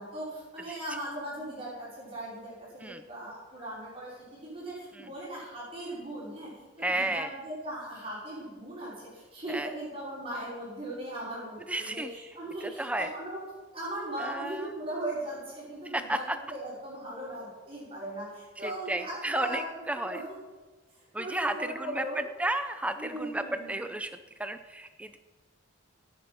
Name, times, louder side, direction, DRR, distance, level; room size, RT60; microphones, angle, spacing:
voice 1, 0.0-6.5 6.8-13.4 13.7-20.2 20.9-22.2 23.0-23.8, right 1 dB, 25° right, -7 dB, 5.0 m, -38 dB
voice 2, 6.8-7.3 9.5-9.7 11.7-12.1 12.8-13.1 14.2-14.7 15.9-16.4 18.6-20.2 21.1-22.0 22.4-23.4 23.7-24.1 24.4-25.2, right 1 dB, 5° right, 9 dB, 0.5 m, -32 dB
17.5 x 7.6 x 5.7 m, 1.3 s
head